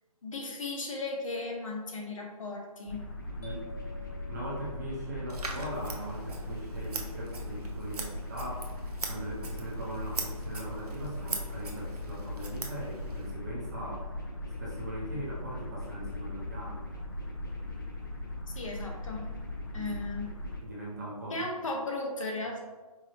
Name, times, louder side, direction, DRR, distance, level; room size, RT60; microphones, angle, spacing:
voice 1, 0.2-3.0 18.5-19.2 19.7-20.2 21.3-22.6, left 2 dB, 60° left, 0 dB, 0.8 m, -36 dB
sound 1, 2.9-20.6, left 2 dB, 35° left, 0.5 m, -39 dB
sound 2, 3.4-5.3, left 4 dB, 80° left, 1.3 m, -49 dB
voice 2, 3.4-3.7 4.3-8.7 9.1-14.1 14.6-16.8 19.7-20.0 20.6-21.5, right 1 dB, 25° right, -5 dB, 0.7 m, -40 dB
Scissors, 5.3-13.3, right 4 dB, 85° right, 0.7 m, -42 dB
4.7 x 2.0 x 2.8 m, 1.3 s
hypercardioid pair, 170°, 19 cm